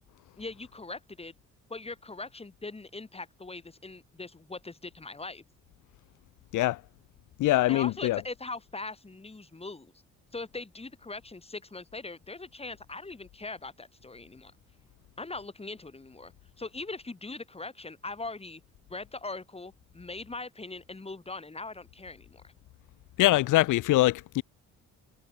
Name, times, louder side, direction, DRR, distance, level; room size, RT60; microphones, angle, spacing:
voice 1, 0.4-1.3 1.7-5.4 7.7-9.9 10.3-14.5 15.2-16.3 16.6-18.6 18.9-22.5, left 3 dB, 20° left, 5.8 m, -41 dB
voice 2, 7.4-8.2 23.2-24.4, left 17 dB, 85° left, 1.1 m, -23 dB
cardioid pair, 90°, 30 cm